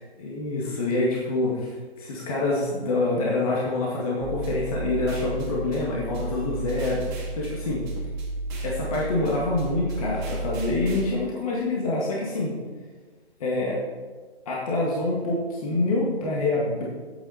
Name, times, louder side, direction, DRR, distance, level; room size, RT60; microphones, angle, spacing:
voice 1, 0.2-7.9 8.6-12.5 13.4-13.8 14.5-16.8, left 2 dB, 35° left, -4 dB, 2.0 m, -26 dB
sound 1, 4.2-11.1, right 2 dB, 20° right, 2.1 m, -33 dB
11.5 x 8.6 x 4.3 m, 1.4 s
hypercardioid pair, 155°, 32 cm